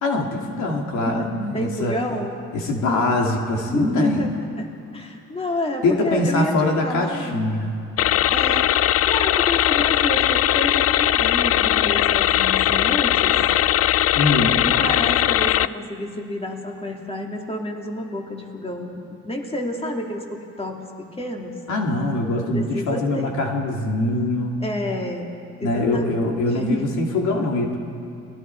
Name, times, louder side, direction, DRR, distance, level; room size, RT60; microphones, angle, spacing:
voice 1, 0.0-2.0 2.5-4.3 5.8-7.7 14.1-14.5 21.7-24.6 25.6-27.8, left 2 dB, 75° left, 1 dB, 2.6 m, -23 dB
voice 2, 1.5-2.3 3.7-4.7 4.9-6.5 6.8-7.4 8.3-8.7 9.0-13.3 14.6-21.5 22.5-23.3 24.6-27.1, left 1 dB, 20° left, 1 dB, 2.7 m, -29 dB
sound 1, 8.0-15.7, left 12 dB, 50° left, 0.5 m, -19 dB
29.5 x 20.0 x 4.7 m, 2.7 s
cardioid pair, 90°, 30 cm